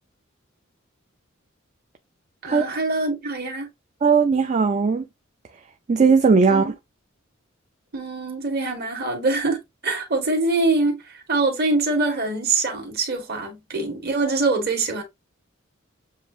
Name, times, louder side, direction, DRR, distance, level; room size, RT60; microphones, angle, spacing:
voice 1, 2.4-3.7 6.5-6.7 7.9-11.0 11.3-15.0, right 3 dB, 50° right, 1.7 m, -24 dB
voice 2, 4.0-5.1 5.9-6.7, right 5 dB, 35° right, 0.4 m, -18 dB
7.3 x 2.5 x 2.7 m
head